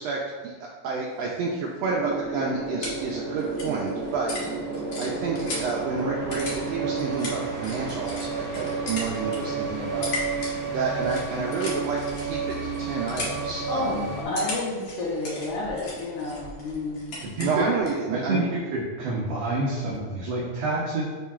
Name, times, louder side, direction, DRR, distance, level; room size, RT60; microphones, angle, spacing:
voice 1, 0.0-4.7 5.0-10.1 10.7-14.1 17.4-18.4, right 4 dB, 85° right, -2 dB, 1.4 m, -30 dB
sound 1, 1.8-14.2, right 4 dB, 40° right, 0.7 m, -31 dB
sound 2, 2.2-18.1, left 2 dB, 55° left, 1.8 m, -39 dB
voice 2, 13.7-14.0 14.2-17.0, left 2 dB, 75° left, -5 dB, 2.2 m, -30 dB
voice 3, 17.2-17.7 18.1-21.0, right 2 dB, 65° right, -6 dB, 1.8 m, -28 dB
10.0 x 3.8 x 2.4 m, 1.4 s
omnidirectional pair, 3.6 m